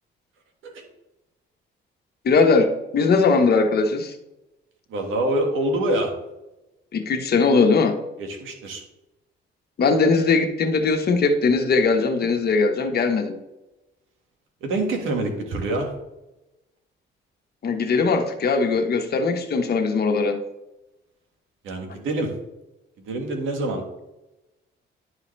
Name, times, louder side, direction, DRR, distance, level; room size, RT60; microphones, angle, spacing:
voice 1, 2.2-2.7 2.9-4.1 6.9-7.9 9.8-13.3 17.6-20.4, left 4 dB, 55° left, 5 dB, 1.2 m, -20 dB
voice 2, 4.9-6.1 8.2-8.8 14.6-15.9 21.6-22.3 23.0-23.8, right 1 dB, 85° right, 2 dB, 1.7 m, -25 dB
11.0 x 4.8 x 3.3 m, 0.96 s
cardioid pair, 90°, 20 cm